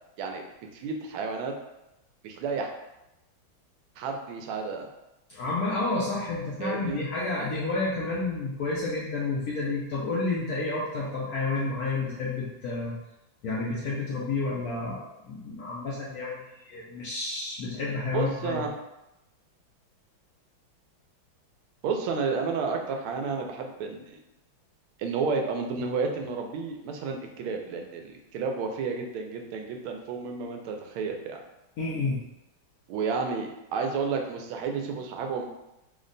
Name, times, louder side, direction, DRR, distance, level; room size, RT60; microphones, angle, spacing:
voice 1, 0.7-1.5 2.2-2.7 4.0-4.9 6.6-7.0 18.1-18.7 21.8-24.2 25.0-31.4 32.9-35.5, right 5 dB, 90° right, 3 dB, 1.4 m, -31 dB
voice 2, 5.3-13.0 13.4-15.0 15.3-18.6 31.8-32.2, left 3 dB, 80° left, -5 dB, 0.8 m, -30 dB
3.4 x 2.1 x 3.8 m, 0.92 s
omnidirectional pair, 2.3 m